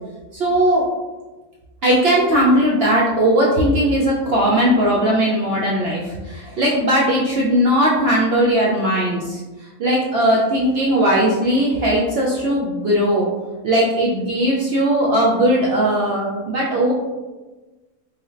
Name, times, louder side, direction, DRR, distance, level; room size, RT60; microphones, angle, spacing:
voice 1, 0.3-0.8 1.8-13.2 13.6-16.9, equal, 85° right, -5 dB, 0.5 m, -18 dB
3.3 x 2.6 x 2.4 m, 1.2 s
omnidirectional pair, 1.6 m